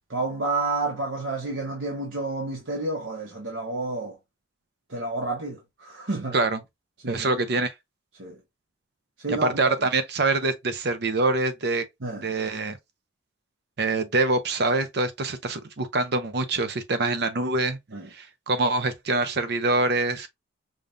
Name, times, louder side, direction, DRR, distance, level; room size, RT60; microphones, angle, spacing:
voice 1, 0.1-4.1 4.9-6.4 7.0-7.4 8.2-8.4 9.2-9.7 12.0-12.3 17.9-18.1, right 3 dB, 70° right, 1.0 m, -30 dB
voice 2, 7.1-7.7 9.3-11.8 12.2-12.8 13.8-17.8 18.1-20.3, right 2 dB, 55° right, 0.7 m, -25 dB
5.2 x 2.4 x 2.6 m
head